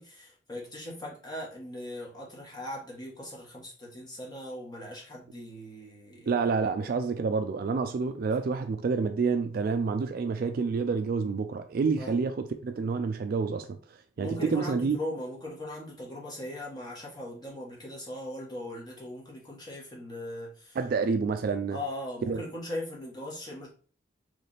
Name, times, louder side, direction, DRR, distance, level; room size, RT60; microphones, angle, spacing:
voice 1, 0.0-6.3 12.0-12.1 14.2-20.8 21.7-23.7, left 1 dB, 25° left, 1.3 m, -39 dB
voice 2, 6.3-13.8 14.2-15.0 20.7-21.8 22.2-22.4, right 5 dB, 55° right, 0.3 m, -28 dB
3.4 x 3.2 x 3.9 m
head